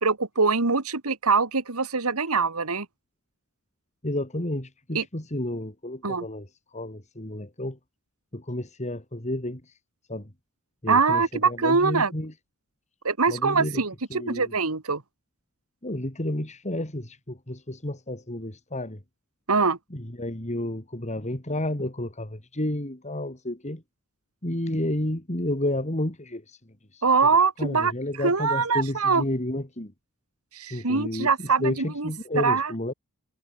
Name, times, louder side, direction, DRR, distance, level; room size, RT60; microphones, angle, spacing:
voice 1, 0.0-2.9 4.9-5.0 6.0-6.3 10.9-12.1 13.0-15.0 19.5-19.8 27.0-27.9 28.2-29.2 30.5-32.1 32.4-32.7, right 4 dB, 90° right, 2.0 m, -23 dB
voice 2, 4.0-7.8 8.3-9.7 10.1-10.3 10.8-12.3 13.3-13.8 14.1-14.5 15.8-19.0 19.9-23.8 24.4-26.6 26.9-27.3 27.6-29.9 30.7-32.9, left 1 dB, 35° left, 3.4 m, -31 dB
head